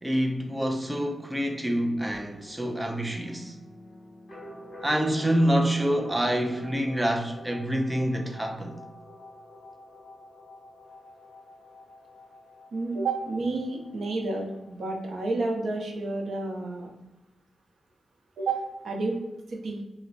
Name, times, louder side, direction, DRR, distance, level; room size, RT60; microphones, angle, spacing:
voice 1, 0.0-3.6 4.8-8.8, equal, 10° right, 0.4 m, -27 dB
sound 1, 2.1-15.6, left 1 dB, 45° left, 1.3 m, -48 dB
voice 2, 12.7-16.9 18.4-19.2 19.5-19.8, right 3 dB, 85° right, 0.7 m, -30 dB
3.2 x 2.1 x 4.0 m
wide cardioid pair, 145°, 0 cm